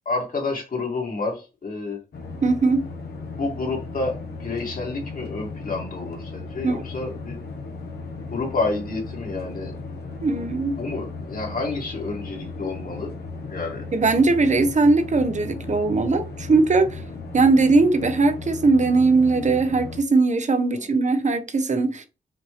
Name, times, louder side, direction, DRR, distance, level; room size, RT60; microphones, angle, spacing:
voice 1, 0.1-2.0 3.3-7.4 8.3-9.8 10.3-10.5 10.8-13.1 13.5-13.8 20.7-20.9, left 3 dB, 55° left, 2.1 m, -29 dB
sound 1, 2.1-20.0, left 3 dB, 70° left, 1.2 m, -36 dB
voice 2, 2.4-2.8 6.6-6.8 10.2-10.8 13.9-17.0 17.3-22.1, right 3 dB, 45° right, 0.9 m, -20 dB
5.8 x 2.6 x 3.2 m
cardioid pair, 55°, 17 cm